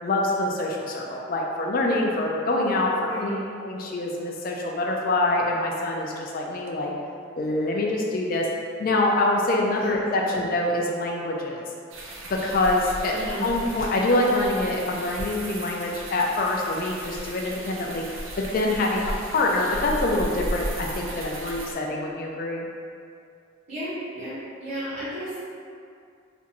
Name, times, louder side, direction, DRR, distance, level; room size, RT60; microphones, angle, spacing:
voice 1, 0.0-2.9 3.2-3.3 3.6-6.9 7.4-8.5 8.8-11.6 12.2-13.1 13.4-18.1 18.5-22.7, left 2 dB, 45° left, -1 dB, 0.3 m, -25 dB
voice 2, 3.0-3.4 9.8-9.9 10.2-10.3 13.1-13.5 23.7-25.4, equal, 30° right, -13 dB, 1.1 m, -33 dB
sound 1, 11.9-21.7, right 1 dB, 65° right, 0.5 m, -35 dB
2.5 x 2.5 x 4.0 m, 2.4 s
head